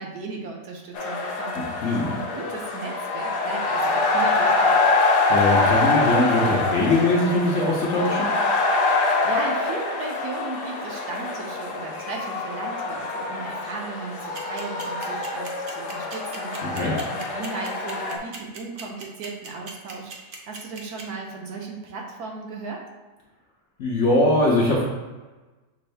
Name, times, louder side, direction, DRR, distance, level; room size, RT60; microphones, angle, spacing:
voice 1, 0.0-4.7 9.0-22.8, right 4 dB, 70° right, 0 dB, 1.1 m, -36 dB
sound 1, 1.0-18.2, left 3 dB, 75° left, 1.2 m, -25 dB
voice 2, 5.3-8.3 16.6-16.9 23.8-24.8, left 2 dB, 55° left, -4 dB, 0.8 m, -21 dB
sound 2, 14.3-21.0, right 4 dB, 90° right, 0.4 m, -38 dB
6.0 x 2.6 x 3.3 m, 1.2 s
omnidirectional pair, 1.8 m